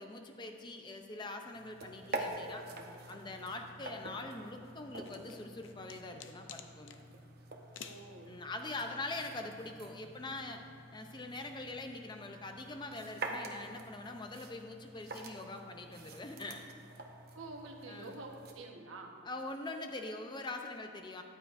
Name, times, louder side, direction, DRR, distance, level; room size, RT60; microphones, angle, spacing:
voice 1, 0.0-2.7 3.1-7.0 8.3-10.6 10.9-16.6 17.9-18.2 19.2-21.2, left 2 dB, 20° left, 5 dB, 0.5 m, -43 dB
sound 1, 1.5-18.5, right 2 dB, 50° right, 0.8 m, -47 dB
sound 2, 5.0-7.0 7.7-8.1, left 7 dB, 70° left, 0.6 m, -50 dB
voice 2, 7.8-8.3 17.3-19.2, right 2 dB, 75° right, 2 dB, 1.1 m, -47 dB
14.0 x 10.0 x 2.6 m, 2.4 s
head